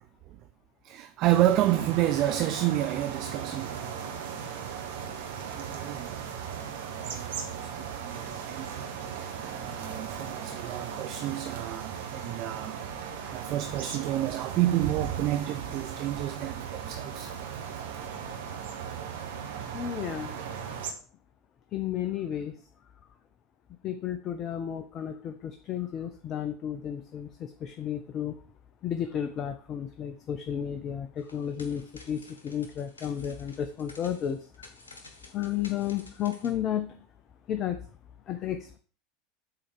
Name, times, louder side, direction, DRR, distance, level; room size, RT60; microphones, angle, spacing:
voice 1, 0.8-3.8 5.6-6.7 7.0-8.8 9.6-12.8 13.3-17.7, right 13 dB, 45° right, 0.5 m, -30 dB
sound 1, 1.2-20.9, right 7 dB, 60° right, 1.3 m, -37 dB
voice 2, 19.7-20.4 21.7-22.5 23.8-28.4 28.8-34.4 35.3-37.0 37.5-37.8 38.3-38.8, left 9 dB, 35° left, 0.7 m, -32 dB
sound 2, 31.2-36.5, left 2 dB, 75° left, 1.4 m, -52 dB
7.7 x 4.2 x 6.6 m
figure-of-eight pair, 75°, 0 cm